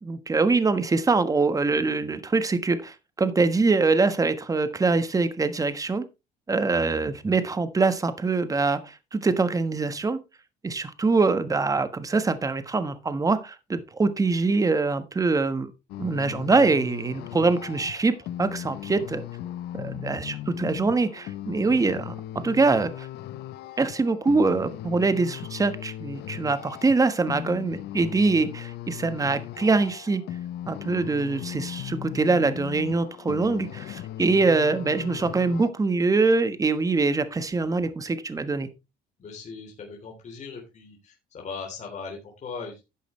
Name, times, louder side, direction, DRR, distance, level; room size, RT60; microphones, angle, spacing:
voice 1, 0.0-6.0 6.5-10.2 10.6-15.7 16.0-18.1 18.4-19.2 19.7-22.1 22.4-23.1 23.8-30.2 30.7-38.7, right 3 dB, 20° right, 1.3 m, -24 dB
sound 1, 15.9-35.7, left 12 dB, 75° left, 0.8 m, -38 dB
voice 2, 39.2-42.8, left 5 dB, 45° left, 3.4 m, -39 dB
11.5 x 8.3 x 3.2 m
cardioid pair, 110°, 17 cm